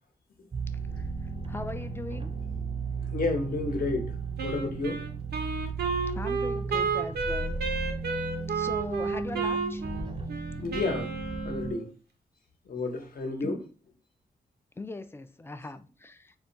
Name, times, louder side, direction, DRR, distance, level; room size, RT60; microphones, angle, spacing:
sound 1, 0.5-11.7, right 4 dB, 35° right, 0.5 m, -35 dB
voice 1, 1.5-2.3 6.2-7.6 8.5-9.8 13.4-13.6 14.8-16.3, left 2 dB, 15° left, 0.3 m, -39 dB
voice 2, 3.1-4.1 4.4-5.1 10.6-11.1 11.4-11.9 12.7-13.6, left 3 dB, 60° left, 0.9 m, -31 dB
Wind instrument woodwind instrument, 4.4-11.9, right 4 dB, 85° right, 0.6 m, -32 dB
2.3 x 2.2 x 3.9 m
cardioid pair, 65°, 16 cm